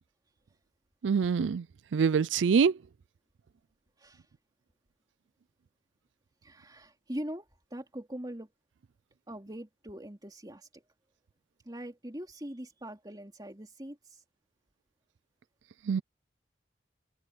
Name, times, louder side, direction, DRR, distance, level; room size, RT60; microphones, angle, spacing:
voice 1, 1.0-1.6 1.9-2.7 15.9-16.0, right 6 dB, 80° right, 0.4 m, -25 dB
voice 2, 6.4-8.5 9.3-10.8 11.6-14.2, equal, 20° right, 3.1 m, -42 dB
head